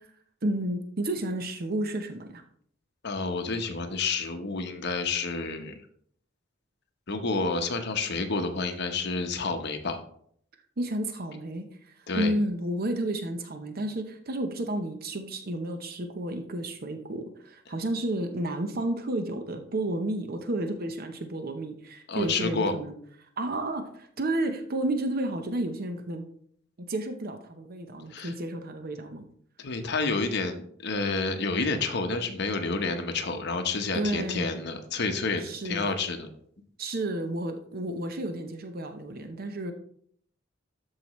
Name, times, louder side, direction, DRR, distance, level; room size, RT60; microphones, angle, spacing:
voice 1, 0.4-2.4 10.8-22.9 23.4-26.3 26.9-29.3 33.9-34.6 35.4-35.9 36.8-39.7, right 1 dB, 50° right, 6 dB, 0.7 m, -31 dB
voice 2, 3.0-5.7 7.1-10.0 12.1-12.3 22.1-22.7 28.1-28.3 29.6-36.3, left 3 dB, 60° left, 6 dB, 1.0 m, -29 dB
13.0 x 4.8 x 3.1 m, 0.64 s
head